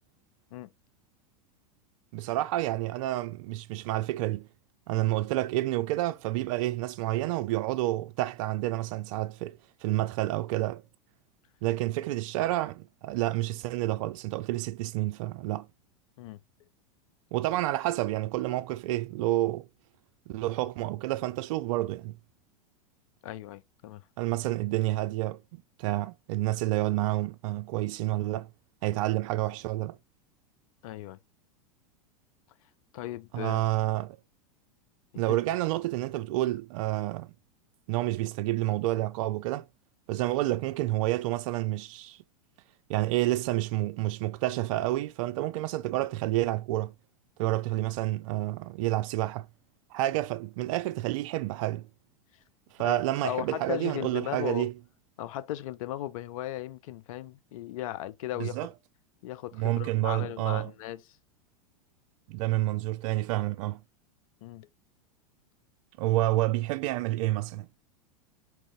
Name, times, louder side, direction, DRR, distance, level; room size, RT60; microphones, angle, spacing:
voice 1, 2.1-4.5 4.9-10.8 11.6-15.7 17.3-19.7 20.3-22.2 24.2-28.5 28.8-30.0 33.3-34.2 35.2-37.3 37.9-39.6 40.1-42.2 42.9-46.9 47.4-49.5 49.9-51.9 52.7-54.7 58.4-58.7 59.6-60.7 62.3-63.8 66.0-67.7, right 16 dB, 60° right, 0.4 m, -29 dB
voice 2, 23.2-24.0 30.8-31.2 32.9-33.6 35.1-35.4 52.8-54.7 55.2-58.6 59.2-61.0 64.4-64.7, left 13 dB, 65° left, 0.5 m, -37 dB
4.6 x 2.6 x 3.1 m
hypercardioid pair, 95°, 19 cm